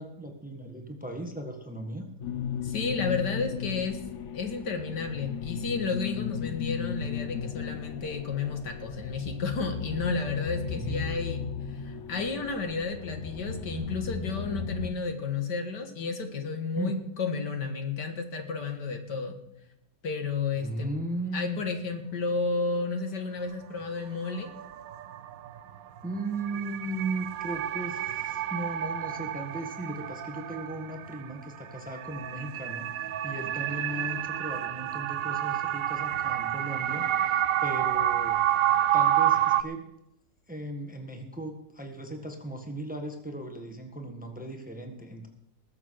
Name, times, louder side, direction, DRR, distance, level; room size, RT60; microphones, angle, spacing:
voice 1, 0.0-2.1 10.6-11.0 16.7-16.9 20.6-21.6 26.0-38.4 38.9-39.9 40.5-45.3, right 2 dB, 5° right, 4 dB, 1.3 m, -37 dB
sound 1, 2.2-14.9, left 7 dB, 55° left, 0.9 m, -35 dB
voice 2, 2.6-4.0 4.3-11.4 11.7-19.4 20.0-20.9 21.3-24.5, left 4 dB, 75° left, 6 dB, 2.3 m, -32 dB
sound 2, 20.6-20.7 23.8-23.9 24.3-39.6, right 11 dB, 65° right, 0.9 m, -29 dB
20.0 x 7.4 x 6.4 m, 0.83 s
omnidirectional pair, 1.9 m